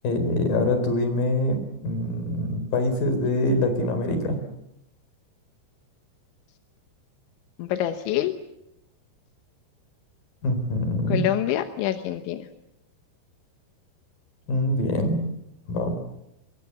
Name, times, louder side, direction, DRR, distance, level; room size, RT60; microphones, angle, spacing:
voice 1, 0.0-4.4 10.4-11.2 14.5-15.2 15.7-15.9, left 1 dB, 50° left, 8 dB, 5.9 m, -24 dB
voice 2, 7.6-8.3 11.1-12.5, left 12 dB, 85° left, 7 dB, 3.5 m, -26 dB
27.5 x 22.0 x 8.2 m, 0.84 s
omnidirectional pair, 5.3 m